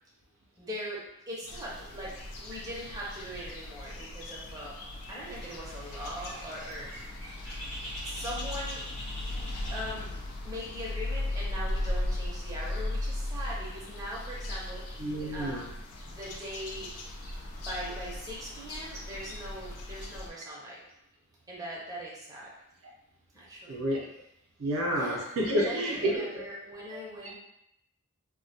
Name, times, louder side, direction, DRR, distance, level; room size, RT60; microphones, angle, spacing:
voice 1, 0.6-4.8 5.1-6.9 8.0-8.8 9.7-10.1 10.4-14.9 15.3-15.6 16.0-16.9 17.6-20.8 21.5-22.5 23.3-23.8 24.9-25.2 25.6-27.4, equal, 15° right, -6 dB, 0.5 m, -40 dB
sound 1, 1.5-20.3, left 1 dB, 80° left, 0.4 m, -37 dB
Bird, 5.4-10.5, equal, 60° left, 0.9 m, -44 dB
voice 2, 15.0-15.7 23.7-24.1 24.6-26.4 26.9-27.0, equal, 65° right, -3 dB, 0.5 m, -30 dB
2.1 x 2.1 x 2.7 m, 0.78 s
head